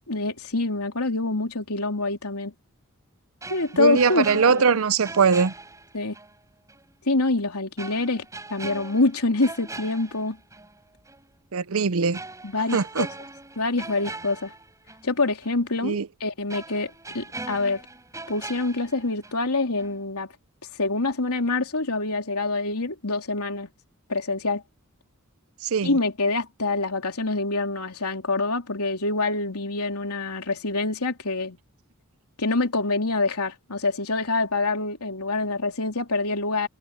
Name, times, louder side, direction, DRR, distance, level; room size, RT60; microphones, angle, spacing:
voice 1, 0.1-2.5 3.5-4.7 5.9-6.1 7.0-10.4 12.4-13.1 13.5-14.5 15.0-17.8 18.3-20.3 20.8-23.7 24.1-24.6 25.8-31.6 32.4-36.7, left 3 dB, 85° left, 3.5 m, -26 dB
sound 1, 3.4-6.4 6.7-6.8 7.8-10.7 11.1-11.3 12.1-15.1 15.4-15.6 16.5-19.5 19.8-20.0, right 2 dB, 15° right, 4.3 m, -40 dB
voice 2, 3.8-5.5 11.5-12.2 12.7-13.1 15.8-16.1 25.6-25.9, right 5 dB, 65° right, 0.6 m, -21 dB
head